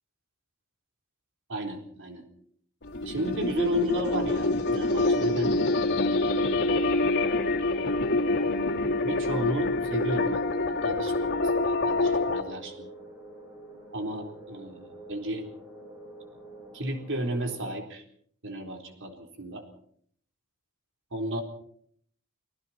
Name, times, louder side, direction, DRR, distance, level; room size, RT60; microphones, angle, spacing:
voice 1, 1.5-2.2 3.0-5.6 6.3-6.9 9.0-12.9 13.9-15.4 16.7-18.0 18.4-19.6 21.1-21.4, right 1 dB, 60° right, 3 dB, 4.1 m, -33 dB
sound 1, 2.8-12.4, left 2 dB, 50° left, 2.8 m, -26 dB
sound 2, 12.2-17.7, right 1 dB, 15° right, 7.1 m, -47 dB
30.0 x 20.0 x 4.5 m, 0.63 s
head